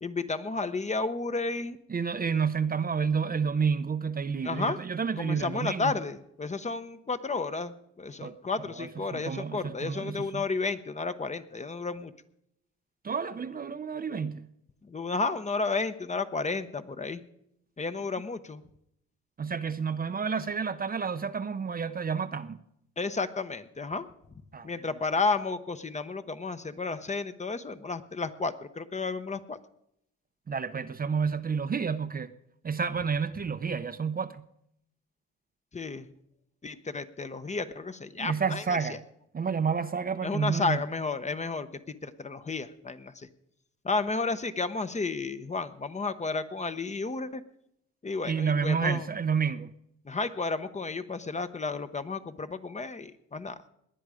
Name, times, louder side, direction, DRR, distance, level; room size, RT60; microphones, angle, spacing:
voice 1, 0.0-1.8 4.4-4.8 5.2-12.1 14.9-17.2 17.8-18.6 23.0-24.1 24.6-29.6 35.7-36.1 36.6-38.6 38.9-39.0 40.2-41.7 42.0-43.3 43.8-47.4 48.0-49.1 50.1-53.6, left 3 dB, 25° left, 0.8 m, -32 dB
voice 2, 1.9-5.9 8.2-8.4 8.7-10.4 13.0-14.5 19.4-22.6 24.5-24.7 30.5-32.3 32.6-34.4 38.2-39.0 39.3-40.8 48.2-49.7, right 6 dB, 30° right, 0.6 m, -30 dB
19.0 x 10.0 x 5.0 m
cardioid pair, 90°, 30 cm